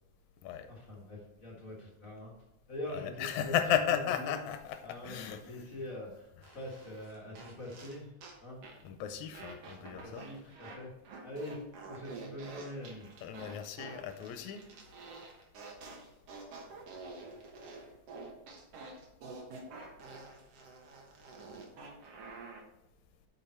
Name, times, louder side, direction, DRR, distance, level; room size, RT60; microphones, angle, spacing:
voice 1, 0.7-2.3 2.7-4.4 4.8-8.1 8.4-8.6 9.9-10.9 11.2-11.6 11.8-13.1, left 1 dB, 40° left, -3 dB, 1.2 m, -44 dB
voice 2, 2.9-5.4 8.8-10.3 13.2-14.6, left 9 dB, 80° left, 9 dB, 1.9 m, -34 dB
sound 1, 6.4-8.4 8.6-8.9 9.3-10.8 11.0-22.6, right 3 dB, 60° right, 2.1 m, -48 dB
8.7 x 5.4 x 4.4 m, 0.94 s
omnidirectional pair, 3.4 m